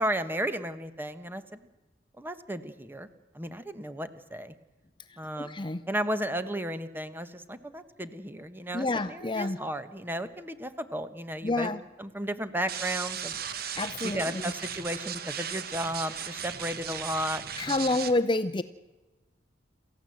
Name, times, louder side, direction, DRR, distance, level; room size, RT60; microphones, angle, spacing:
voice 1, 0.0-1.6 2.2-3.1 3.3-4.5 5.2-5.6 5.9-11.7 12.0-13.4 14.0-17.9, equal, 10° right, 11 dB, 1.2 m, -34 dB
voice 2, 5.4-5.8 8.7-9.6 11.4-11.8 13.8-14.4 17.6-18.6, left 2 dB, 25° left, 10 dB, 0.7 m, -28 dB
sound 1, 12.7-18.1, right 8 dB, 55° right, 1.4 m, -36 dB
28.0 x 14.5 x 7.9 m, 1.2 s
head